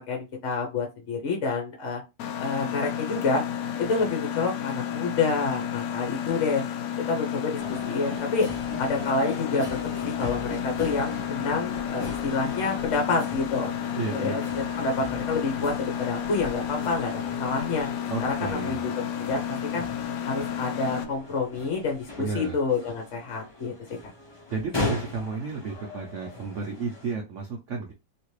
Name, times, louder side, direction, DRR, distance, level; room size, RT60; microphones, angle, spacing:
voice 1, 0.0-2.0 2.4-3.4 3.8-6.6 7.1-8.5 8.8-9.7 10.0-13.7 14.1-14.4 14.8-17.9 18.2-18.9 19.3-19.8 20.2-23.7, left 4 dB, 50° left, 1 dB, 1.0 m, -28 dB
Mechanisms, 2.2-21.0, left 9 dB, 80° left, 0.8 m, -32 dB
sound 1, 7.6-27.1, left 2 dB, 25° left, 0.5 m, -39 dB
voice 2, 14.0-14.4 18.1-18.9 22.2-22.6 24.5-27.9, right 4 dB, 75° right, 1 dB, 0.6 m, -32 dB
3.1 x 2.9 x 3.1 m, 0.25 s
omnidirectional pair, 2.1 m